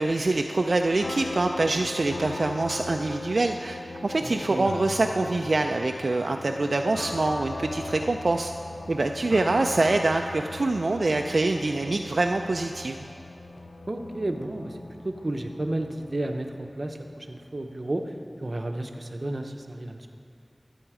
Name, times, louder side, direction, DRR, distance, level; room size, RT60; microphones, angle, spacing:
voice 1, 0.0-8.5 8.9-13.1, right 2 dB, 75° right, 4 dB, 0.3 m, -25 dB
sound 1, 1.0-17.5, left 2 dB, 85° left, 0.4 m, -39 dB
voice 2, 4.2-4.7 13.9-14.8 15.0-18.1 18.4-20.1, right 1 dB, 45° right, 5 dB, 0.7 m, -32 dB
12.0 x 7.1 x 4.8 m, 2.4 s
wide cardioid pair, 65°, 0 cm